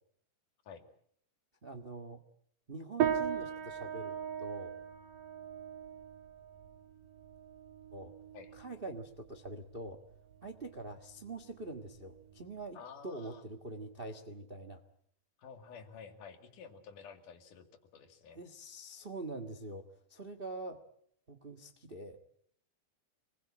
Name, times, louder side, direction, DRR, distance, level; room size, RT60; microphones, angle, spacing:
voice 1, 1.6-2.2 2.7-4.7 7.9-8.1 8.6-10.0 10.4-12.8 13.0-14.8 18.3-20.8 21.3-22.2, right 2 dB, 35° right, 8 dB, 0.9 m, -44 dB
sound 1, 3.0-12.7, right 9 dB, 85° right, 3.3 m, -39 dB
voice 2, 12.7-13.4 15.4-17.7 17.9-18.4, left 6 dB, 75° left, 8 dB, 3.6 m, -51 dB
26.5 x 20.5 x 8.7 m, 0.68 s
omnidirectional pair, 3.7 m